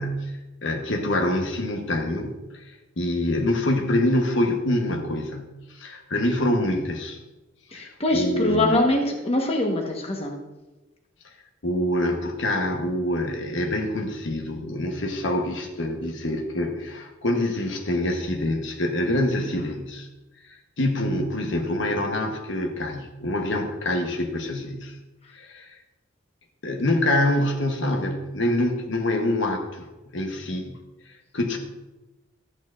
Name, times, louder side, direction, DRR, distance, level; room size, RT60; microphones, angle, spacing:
voice 1, 0.0-7.2 7.7-8.8 11.2-11.3 11.6-20.1 20.4-25.0 25.3-25.8 26.6-29.9 30.1-30.8 31.0-31.6, left 1 dB, 65° left, 3 dB, 1.0 m, -26 dB
voice 2, 7.7-10.3, left 1 dB, 30° left, 1 dB, 1.1 m, -23 dB
13.0 x 8.8 x 2.5 m, 1.1 s
head